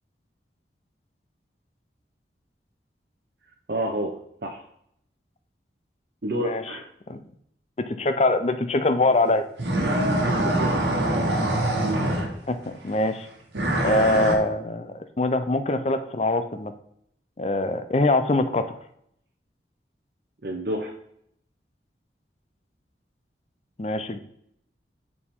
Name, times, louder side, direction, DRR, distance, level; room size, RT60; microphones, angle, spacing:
voice 1, 3.7-4.1 4.4-4.6 6.2-6.9 10.2-10.8 12.0-12.1 13.8-14.0 20.4-20.9, right 1 dB, 60° right, -1 dB, 0.7 m, -29 dB
voice 2, 7.8-9.5 12.5-13.3 13.8-16.7 17.4-18.8 23.8-24.2, left 2 dB, 35° left, 9 dB, 0.5 m, -23 dB
sound 1, 9.6-12.6 13.5-14.4, right 1 dB, 80° right, 1.3 m, -24 dB
6.9 x 4.3 x 3.6 m, 0.71 s
head